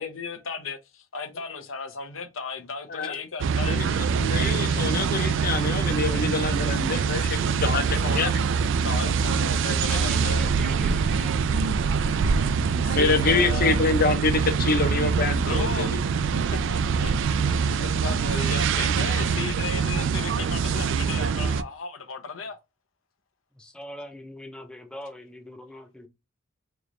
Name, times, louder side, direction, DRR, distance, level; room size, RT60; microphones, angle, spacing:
voice 1, 0.0-4.0 7.1-7.2 7.6-10.4 12.8-13.8 15.4-15.9 16.3-22.6, left 4 dB, 80° left, 0.8 m, -35 dB
sound 1, 3.4-21.6, right 5 dB, 65° right, 0.3 m, -24 dB
voice 2, 4.2-7.8 8.1-8.3 12.9-16.0, left 3 dB, 45° left, 0.7 m, -26 dB
voice 3, 9.9-11.7 23.5-26.1, left 1 dB, 5° left, 0.6 m, -42 dB
3.2 x 3.1 x 3.7 m
head